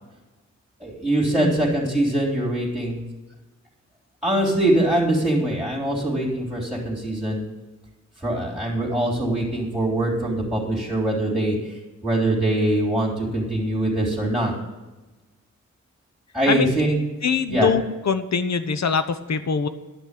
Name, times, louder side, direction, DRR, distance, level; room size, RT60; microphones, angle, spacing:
voice 1, 0.8-3.0 4.2-7.4 8.2-14.5 16.3-17.0 17.5-17.7, right 1 dB, ahead, -5 dB, 3.3 m, -23 dB
voice 2, 17.2-19.7, left 5 dB, 60° left, 11 dB, 0.9 m, -23 dB
11.5 x 6.1 x 8.3 m, 1.1 s
wide cardioid pair, 80°, 30 cm